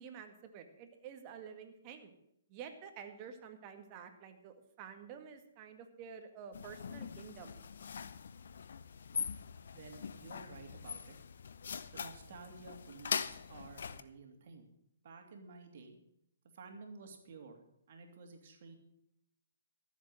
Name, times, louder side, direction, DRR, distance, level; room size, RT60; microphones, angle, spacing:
voice 1, 0.0-2.1 2.5-7.6, right 7 dB, 35° right, 7 dB, 1.9 m, -50 dB
sound 1, 6.5-14.0, left 6 dB, 65° left, 0.8 m, -42 dB
voice 2, 9.7-11.2 11.9-14.7 15.0-16.0 16.5-17.6 17.9-18.7, right 4 dB, 55° right, 4 dB, 2.7 m, -52 dB
14.0 x 7.5 x 7.8 m, 0.77 s
hypercardioid pair, 135°, 0 cm